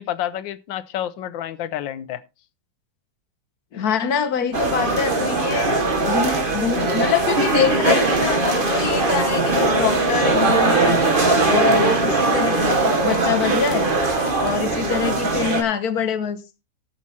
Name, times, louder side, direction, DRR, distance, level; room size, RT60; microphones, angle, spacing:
voice 1, 0.0-2.2, left 11 dB, 90° left, 1.5 m, -29 dB
voice 2, 3.7-5.7 6.1-11.0 11.5-13.9 14.4-16.4, left 7 dB, 60° left, 1.4 m, -24 dB
sound 1, 4.5-15.6, right 2 dB, 30° right, 1.6 m, -20 dB
18.0 x 7.1 x 2.8 m
omnidirectional pair, 2.0 m